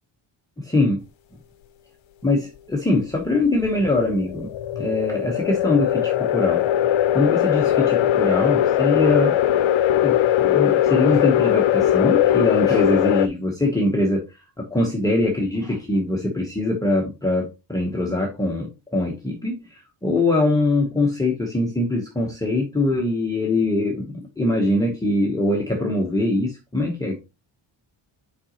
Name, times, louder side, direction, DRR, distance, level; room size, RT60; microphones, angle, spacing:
voice 1, 0.6-1.0 2.2-4.5 4.8-6.6 7.1-9.4 10.0-14.2 14.6-27.2, left 2 dB, 5° left, 0 dB, 0.9 m, -22 dB
sound 1, 3.4-13.3, left 11 dB, 70° left, 0.7 m, -20 dB
7.5 x 5.0 x 2.9 m, 0.26 s
wide cardioid pair, 170°, 49 cm